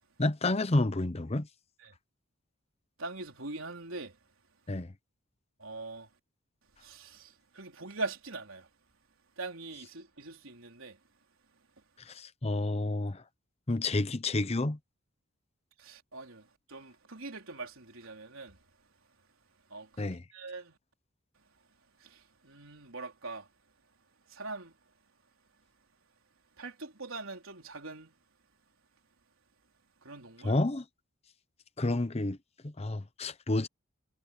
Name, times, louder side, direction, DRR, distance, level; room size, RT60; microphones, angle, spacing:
voice 1, 0.2-1.5 4.7-4.9 12.0-13.2 13.7-14.8 20.0-20.2 30.4-30.8 31.8-32.4 32.6-33.7, left 2 dB, 30° left, 0.8 m, -30 dB
voice 2, 3.0-4.2 5.6-6.1 6.8-8.7 9.4-11.0 15.8-18.6 19.7-20.8 22.0-23.5 24.3-24.8 26.6-28.1 30.0-30.6, right 3 dB, 80° right, 3.9 m, -42 dB
head